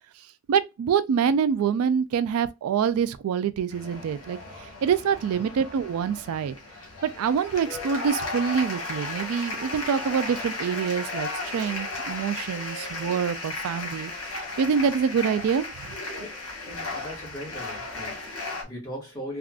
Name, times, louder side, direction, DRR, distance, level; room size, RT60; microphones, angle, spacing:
voice 1, 0.5-6.6 7.0-15.9, right 7 dB, 80° right, 0.3 m, -26 dB
sound 1, 3.7-18.6, left 2 dB, 70° left, 1.4 m, -35 dB
voice 2, 16.6-19.4, equal, 15° left, 1.6 m, -39 dB
3.5 x 2.4 x 2.3 m
head